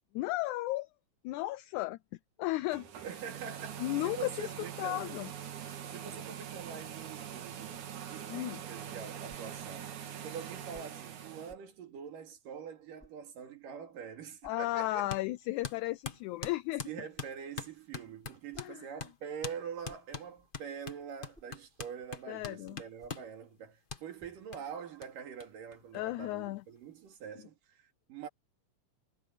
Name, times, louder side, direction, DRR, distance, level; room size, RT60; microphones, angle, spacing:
voice 1, 0.1-0.9 1.2-2.0 2.4-2.8 3.8-4.5 4.8-5.3 8.3-8.6 14.4-16.9 18.6-18.8 22.3-22.8 25.9-26.6, left 18 dB, 80° left, 1.8 m, -34 dB
sound 1, 2.6-11.5, right 9 dB, 65° right, 3.4 m, -43 dB
voice 2, 3.0-5.1 5.9-10.0 10.2-15.1 16.9-28.3, right 7 dB, 85° right, 4.0 m, -45 dB
sound 2, 11.5-11.8 13.0-13.2 14.4-14.7 16.4-16.7 18.2-18.8 19.6-20.6 21.0-21.6 22.8-23.3 24.1-24.5, equal, ahead, 6.6 m, -62 dB
sound 3, 15.1-15.3 15.6-18.7 19.0-19.1 19.4-19.6 19.8-23.3 23.9-24.0 24.5-24.6 25.0-25.1 25.4-25.5 25.7-26.5, left 5 dB, 65° left, 0.5 m, -42 dB
omnidirectional pair, 3.7 m